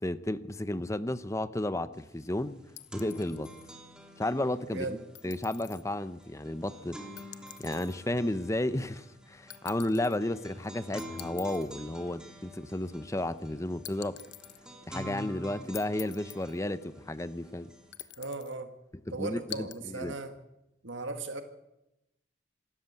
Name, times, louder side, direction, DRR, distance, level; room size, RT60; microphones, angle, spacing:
voice 1, 0.0-2.6 2.9-3.5 4.2-5.0 5.2-7.0 7.6-14.2 14.9-17.7 19.1-20.1, left 1 dB, 15° left, 14 dB, 0.8 m, -33 dB
sound 1, 2.0-2.1 2.4-17.9, equal, 5° right, 3.1 m, -48 dB
sound 2, 2.8-3.7 5.1-5.8 7.2-8.0 9.5-10.2 11.0-11.7 13.8-14.6 15.7-16.6 17.9-18.5 19.5-19.8, left 14 dB, 65° left, 1.1 m, -46 dB
voice 2, 18.2-18.7 19.1-20.3 20.8-21.4, right 3 dB, 90° right, 7 dB, 2.0 m, -37 dB
27.0 x 13.5 x 8.3 m, 0.91 s
head